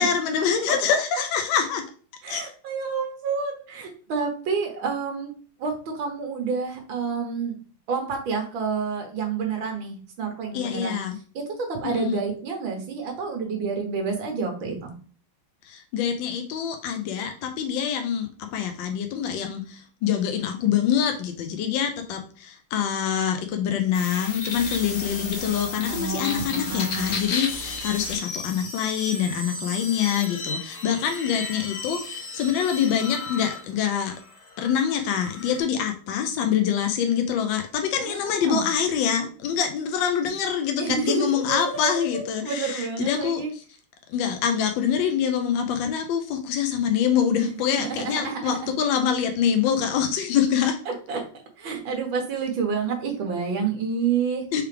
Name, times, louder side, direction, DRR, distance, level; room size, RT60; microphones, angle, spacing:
voice 1, 0.0-1.8 2.3-2.4 10.5-11.2 11.8-12.2 15.6-34.1 34.6-43.6 44.1-50.7 54.5-54.6, left 8 dB, 75° left, 5 dB, 1.2 m, -25 dB
voice 2, 2.2-5.3 5.6-7.5 7.9-11.0 11.4-14.9 25.9-27.2 38.0-38.6 40.8-43.5 47.7-48.7 50.9-51.3 51.6-54.5, right 5 dB, 70° right, 2 dB, 1.8 m, -29 dB
sound 1, 23.9-35.6, left 3 dB, 55° left, 1.0 m, -34 dB
4.7 x 3.3 x 3.3 m, 0.41 s
omnidirectional pair, 2.2 m